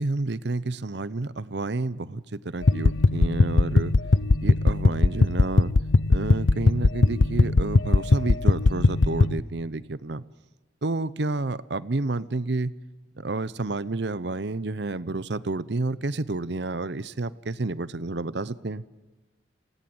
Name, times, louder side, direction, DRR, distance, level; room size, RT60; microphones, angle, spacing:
voice 1, 0.0-3.9 4.4-5.7 6.1-10.2 10.8-12.7 13.2-18.8, right 2 dB, 60° right, 17 dB, 0.8 m, -30 dB
sound 1, 2.6-9.4, left 3 dB, 90° left, 0.7 m, -20 dB
28.5 x 17.5 x 7.9 m, 1.2 s
head